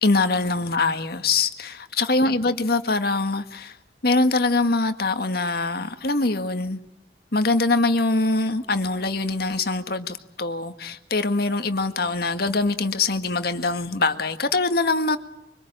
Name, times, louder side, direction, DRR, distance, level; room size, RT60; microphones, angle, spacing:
voice 1, 0.0-3.8 4.0-6.8 7.3-15.2, left 3 dB, 60° left, 8 dB, 1.8 m, -23 dB
25.0 x 24.5 x 8.8 m, 0.80 s
head